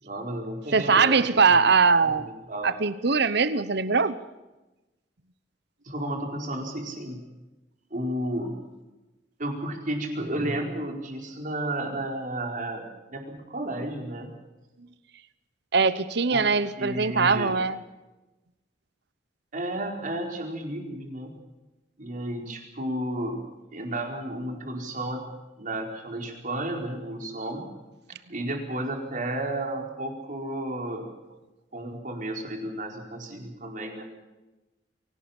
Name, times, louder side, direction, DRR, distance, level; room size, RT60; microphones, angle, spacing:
voice 1, 0.0-1.6 2.0-2.8 5.8-7.2 7.9-8.5 9.4-12.8 13.1-14.3 16.3-16.5 16.8-17.5 19.5-21.3 22.0-23.4 23.7-25.3 25.6-27.6 28.3-31.1 31.7-34.0, right 1 dB, 45° right, 2 dB, 4.6 m, -32 dB
voice 2, 0.7-2.3 2.6-4.2 15.7-17.8, right 5 dB, 65° right, 14 dB, 1.0 m, -21 dB
24.0 x 17.5 x 7.3 m, 1.1 s
head